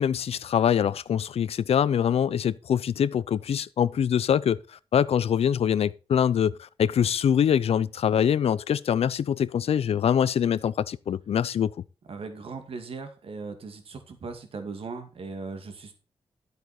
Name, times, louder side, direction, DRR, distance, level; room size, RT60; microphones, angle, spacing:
voice 1, 0.0-4.6 4.9-11.7, left 8 dB, 85° left, 0.6 m, -24 dB
voice 2, 12.1-15.9, right 4 dB, 70° right, 2.4 m, -38 dB
12.0 x 8.0 x 4.4 m
wide cardioid pair, 110°, 10 cm